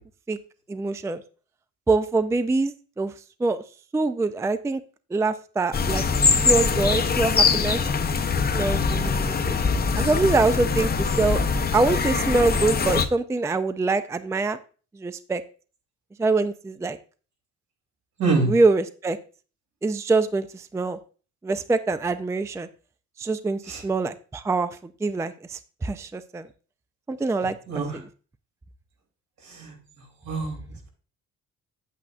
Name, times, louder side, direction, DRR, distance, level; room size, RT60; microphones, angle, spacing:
voice 1, 0.7-1.2 1.9-3.1 3.4-3.6 3.9-4.8 5.1-6.0 6.3-7.8 8.5-9.6 10.0-11.4 11.7-14.6 14.9-15.4 16.2-17.0 18.5-19.2 19.8-21.0 21.4-22.7 23.2-26.5 27.1-27.6 27.9-28.0, right 3 dB, 10° right, 12 dB, 0.4 m, -24 dB
sound 1, 5.7-13.1, left 5 dB, 30° left, 0.8 m, -23 dB
voice 2, 18.2-18.5 23.7-23.8 27.7-28.0 29.5-30.6, right 4 dB, 75° right, 1 dB, 3.2 m, -26 dB
8.4 x 8.4 x 2.5 m, 0.39 s
cardioid pair, 90°, 30 cm